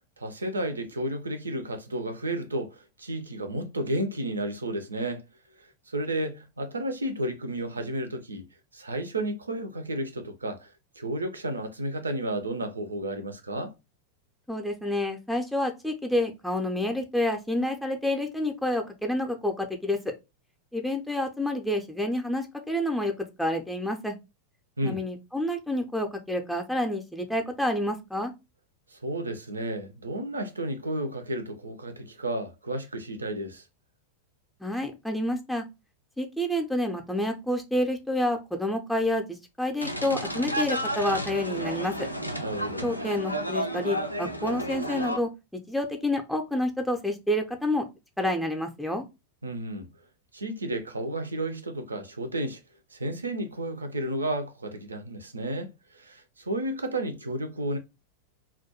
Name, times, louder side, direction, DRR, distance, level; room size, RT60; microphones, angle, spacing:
voice 1, 0.2-5.2 5.6-8.5 8.7-13.7 24.8-25.0 28.9-33.6 42.4-42.9 49.4-49.9 50.3-52.6 52.9-57.8, right 1 dB, 75° right, 0.4 m, -32 dB
voice 2, 14.5-20.1 20.7-23.1 23.4-24.2 24.8-28.3 34.6-35.6 36.2-41.9 42.8-47.8 48.2-49.0, left 1 dB, ahead, 0.4 m, -28 dB
sound 1, 39.8-45.2, equal, 90° left, 0.3 m, -31 dB
2.2 x 2.1 x 2.8 m
figure-of-eight pair, 90°, 0 cm